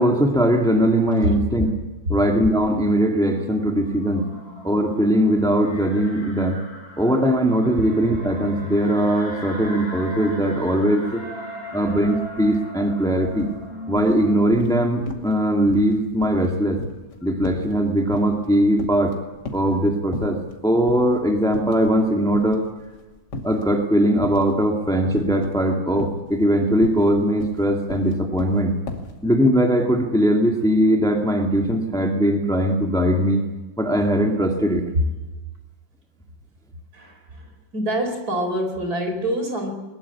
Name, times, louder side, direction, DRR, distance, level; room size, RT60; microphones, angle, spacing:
voice 1, 0.0-1.7 2.1-4.3 4.6-6.6 7.0-11.2 11.7-13.5 13.9-16.8 17.2-19.1 19.5-20.4 20.6-22.6 23.4-28.7 29.2-33.4 33.8-34.8, equal, ahead, 2 dB, 2.3 m, -20 dB
sound 1, 2.5-14.4, right 1 dB, 40° left, 6.0 m, -37 dB
sound 2, 12.4-12.6 12.9-13.6 14.0-14.8 15.1-15.4 15.7-18.5 18.8-19.7 20.1-20.5 20.9-21.1 21.5-22.0 22.3-23.7 24.2-24.6 25.2-25.6 25.9-29.2, left 3 dB, 60° left, 3.0 m, -35 dB
voice 2, 36.9-39.7, equal, 50° right, 5 dB, 4.9 m, -25 dB
21.0 x 21.0 x 8.6 m, 1.1 s
omnidirectional pair, 2.0 m